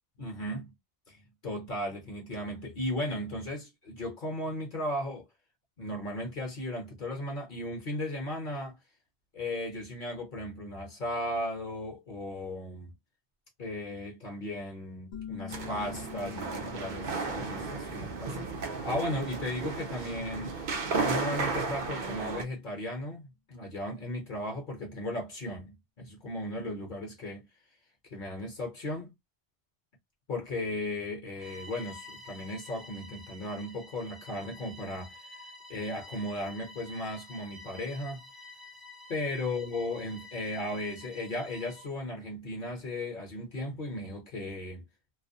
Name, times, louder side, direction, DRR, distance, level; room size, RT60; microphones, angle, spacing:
voice 1, 0.2-0.7 1.1-5.3 5.8-8.8 9.3-12.9 13.6-20.6 21.0-27.5 28.1-29.1 30.3-35.4 35.7-38.3 39.1-44.9, left 1 dB, 50° left, 0.9 m, -36 dB
sound 1, 15.1-20.5, left 8 dB, 85° left, 0.9 m, -47 dB
sound 2, 15.5-22.4, right 4 dB, 55° right, 0.6 m, -34 dB
Bowed string instrument, 31.3-42.0, left 1 dB, ahead, 0.6 m, -49 dB
2.4 x 2.0 x 2.5 m
omnidirectional pair, 1.1 m